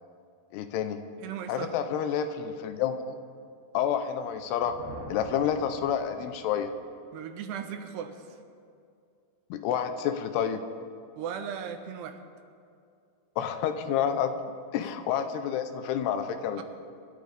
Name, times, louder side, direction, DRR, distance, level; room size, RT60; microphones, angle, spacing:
voice 1, 0.5-1.0 1.5-3.2 3.7-4.8 5.1-6.7 9.5-10.6 13.4-14.3 14.7-16.6, left 8 dB, 85° left, 8 dB, 2.8 m, -29 dB
voice 2, 1.2-1.8 7.1-8.4 11.2-12.2 14.8-14.9 16.6-16.7, right 8 dB, 80° right, 7 dB, 3.1 m, -37 dB
Thunder, 4.3-6.8, right 1 dB, 60° right, 4.2 m, -47 dB
26.5 x 13.5 x 3.5 m, 2.4 s
omnidirectional pair, 4.8 m